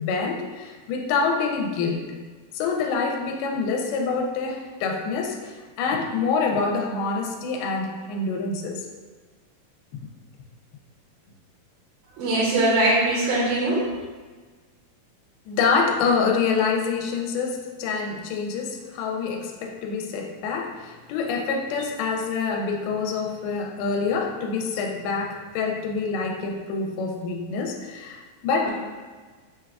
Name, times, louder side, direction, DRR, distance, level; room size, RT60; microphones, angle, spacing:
voice 1, 0.0-2.1 2.5-8.9 9.9-10.0 15.5-28.7, left 4 dB, 85° left, 1 dB, 2.4 m, -26 dB
voice 2, 12.1-13.9 28.6-28.7, right 1 dB, 80° right, -7 dB, 2.4 m, -22 dB
6.2 x 2.2 x 2.3 m, 1.4 s
omnidirectional pair, 4.4 m